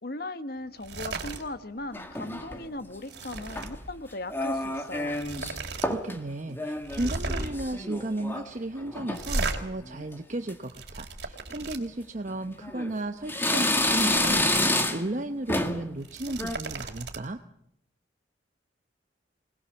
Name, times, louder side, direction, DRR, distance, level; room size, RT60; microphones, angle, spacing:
voice 1, 0.0-5.1, left 2 dB, 55° left, 11 dB, 1.2 m, -38 dB
sound 1, 0.8-1.4 1.8-2.0 2.4-3.7 4.7-4.8 5.1-5.9 6.2-6.3 6.8-7.7 9.1-9.6 10.4-11.8 13.4-14.7 15.1-15.2 15.9-17.2, right 3 dB, 65° right, 3.4 m, -35 dB
sound 2, 1.9-2.7 3.4-3.9 4.3-5.6 5.8-6.2 6.5-8.5 8.8-9.3 9.8-10.1 10.5-10.6 11.5-11.7 12.3-12.9 13.3-15.2 15.5-15.9 16.3-16.6, left 1 dB, 10° left, 1.9 m, -29 dB
voice 2, 5.6-17.4, right 1 dB, 40° right, 7 dB, 0.9 m, -34 dB
25.5 x 20.0 x 7.1 m, 0.75 s
head